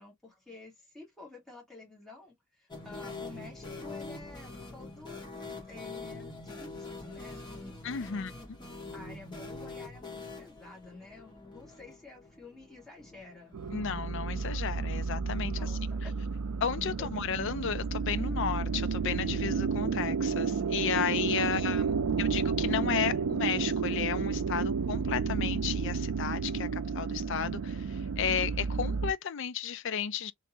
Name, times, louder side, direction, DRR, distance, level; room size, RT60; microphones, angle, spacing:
voice 1, 0.0-5.2 5.7-8.5 8.9-13.6 15.5-16.0 21.4-22.4, left 3 dB, ahead, 1.9 m, -49 dB
sound 1, 2.7-14.4 14.7-14.8 15.0-15.1 17.2-17.3, left 3 dB, 20° left, 1.7 m, -45 dB
voice 2, 7.8-8.3 13.7-15.5 16.6-21.8 22.2-30.3, left 8 dB, 60° left, 0.4 m, -33 dB
sound 2, 13.5-29.1, right 5 dB, 85° right, 0.4 m, -31 dB
3.5 x 3.0 x 2.9 m
head